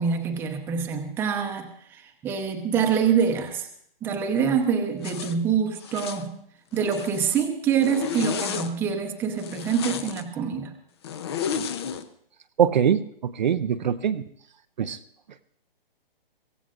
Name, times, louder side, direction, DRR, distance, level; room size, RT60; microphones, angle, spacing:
voice 1, 0.0-3.7 4.0-6.4 6.7-10.7, right 7 dB, 5° right, 3 dB, 0.8 m, -25 dB
Zipper (clothing), 5.0-5.4 5.8-6.3 6.7-7.4 7.8-8.7 9.4-10.2 11.0-12.0, left 7 dB, 30° left, 0.6 m, -32 dB
voice 2, 12.6-14.2 14.8-15.0, right 8 dB, 50° right, 10 dB, 0.6 m, -23 dB
23.5 x 16.0 x 2.5 m, 0.67 s
hypercardioid pair, 155°, 29 cm